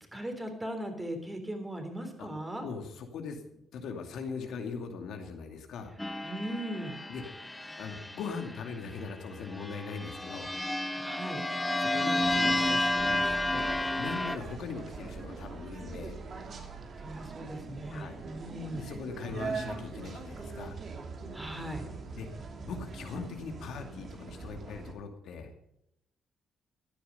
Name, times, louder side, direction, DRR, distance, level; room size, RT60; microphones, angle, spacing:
voice 1, 0.1-2.7 6.2-7.0 11.0-11.4 17.0-18.8 21.3-21.9, right 1 dB, 15° right, 6 dB, 3.6 m, -38 dB
voice 2, 2.6-5.9 7.1-7.2 7.8-10.5 11.8-16.2 17.9-18.2 18.7-20.8 22.1-22.3 22.6-25.5, left 5 dB, 75° left, 4 dB, 2.4 m, -40 dB
sound 1, 6.0-8.7 9.5-14.4, left 1 dB, 10° left, 0.7 m, -31 dB
sound 2, 12.2-24.9, right 4 dB, 50° right, 2.6 m, -42 dB
15.0 x 10.5 x 5.4 m, 0.78 s
cardioid pair, 90°, 0 cm